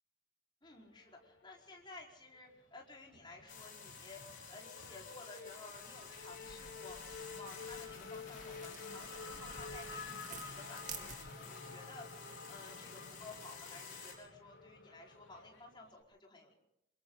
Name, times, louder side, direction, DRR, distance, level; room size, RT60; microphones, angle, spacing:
voice 1, 0.6-7.0 7.3-12.1 12.5-16.5, left 3 dB, 20° left, -1 dB, 4.6 m, -54 dB
Race car auto racing / Accelerating revving vroom, 1.0-2.0 2.3-16.0, left 4 dB, 75° left, 3.8 m, -51 dB
sound 1, 3.5-14.1, left 5 dB, 45° left, 6.3 m, -51 dB
sound 2, 5.5-11.6, right 6 dB, 35° right, 2.4 m, -54 dB
29.0 x 23.5 x 3.9 m, 0.77 s
head